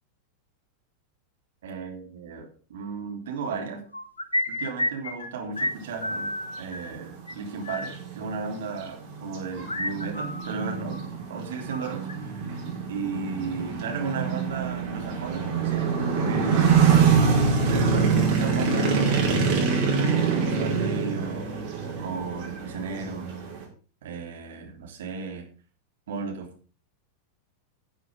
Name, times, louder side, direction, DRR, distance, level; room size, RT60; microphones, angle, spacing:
voice 1, 1.6-3.8 4.5-11.0 11.3-12.5 12.8-16.8 17.7-21.5 22.0-23.3 24.0-25.4 26.1-26.5, right 4 dB, 60° right, 1 dB, 3.4 m, -34 dB
sound 1, 3.9-5.3 5.6-5.7 6.0-6.9 7.3-7.4 7.6-7.9 9.7-11.1 11.4-12.1, left 1 dB, 80° left, 1.3 m, -31 dB
sound 2, 6.6-6.7 7.2-23.6, right 5 dB, 40° right, 5.3 m, -25 dB
13.0 x 7.5 x 5.1 m, 0.39 s
figure-of-eight pair, 90°, 0 cm